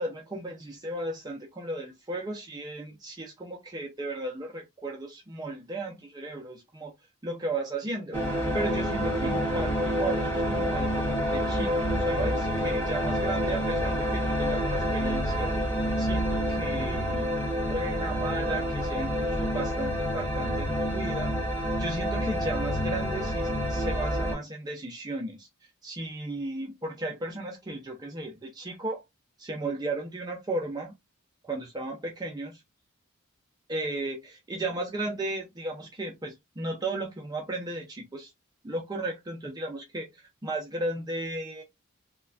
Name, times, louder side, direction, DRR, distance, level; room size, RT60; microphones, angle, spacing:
voice 1, 0.0-6.9 7.2-8.2 8.5-11.7 12.1-15.5 16.0-21.3 21.8-25.5 25.8-29.0 29.4-30.9 31.4-32.6 33.7-38.3 38.6-40.1 40.4-41.6, right 2 dB, 20° right, 0.4 m, -35 dB
sound 1, 8.1-24.3, equal, 10° left, 1.5 m, -28 dB
3.1 x 2.1 x 2.4 m
head